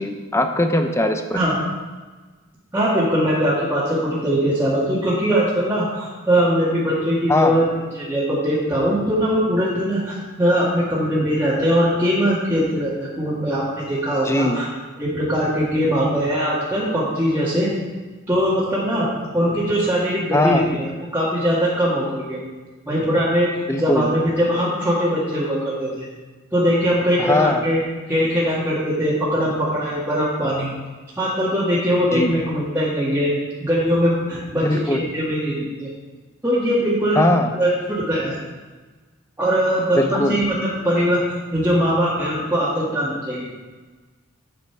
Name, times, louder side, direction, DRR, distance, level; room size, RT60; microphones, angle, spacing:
voice 1, 0.0-1.4 7.3-7.6 14.2-14.6 20.3-20.7 23.7-24.1 27.2-27.6 32.1-32.3 34.6-35.0 37.2-37.5 40.0-40.3, left 1 dB, 15° left, 6 dB, 0.6 m, -20 dB
voice 2, 2.7-7.7 7.9-14.7 15.0-17.7 18.3-19.1 19.3-22.4 22.9-26.1 26.5-27.8 28.1-30.7 31.2-33.3 33.6-35.9 36.4-37.2 37.5-38.4 39.4-41.2 41.5-43.5, equal, 10° right, -10 dB, 1.8 m, -21 dB
8.8 x 7.8 x 4.6 m, 1.3 s
head